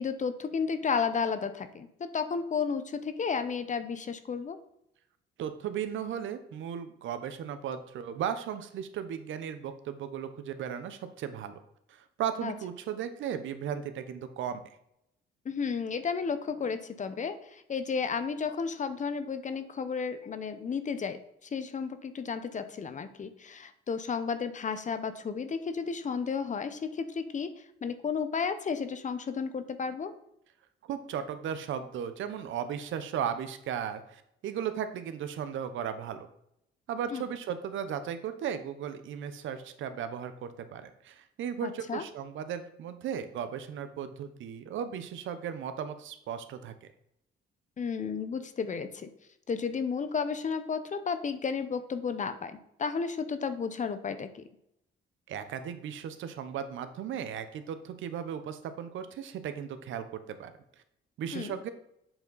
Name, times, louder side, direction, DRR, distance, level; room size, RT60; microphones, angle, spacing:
voice 1, 0.0-4.6 12.4-12.5 15.4-21.2 21.5-27.5 27.8-30.1 37.1-37.2 41.6-42.0 47.8-49.1 49.5-54.4 61.3-61.5, left 5 dB, 40° left, 11 dB, 0.8 m, -33 dB
voice 2, 5.4-11.6 11.9-14.6 30.9-36.3 36.9-46.9 55.3-60.5 61.2-61.7, right 8 dB, 75° right, 10 dB, 0.8 m, -36 dB
7.8 x 4.6 x 4.0 m, 0.78 s
cardioid pair, 90°, 20 cm